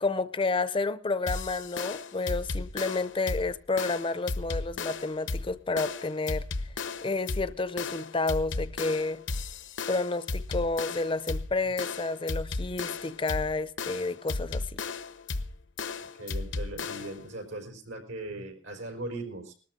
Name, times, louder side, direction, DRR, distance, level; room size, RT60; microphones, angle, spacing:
voice 1, 0.0-6.5 7.0-9.2 9.9-14.8, left 3 dB, 30° left, 0.6 m, -30 dB
sound 1, 1.3-17.2, left 3 dB, 75° left, 0.9 m, -35 dB
voice 2, 16.0-19.5, right 2 dB, 90° right, 4.8 m, -39 dB
20.0 x 13.0 x 3.7 m
head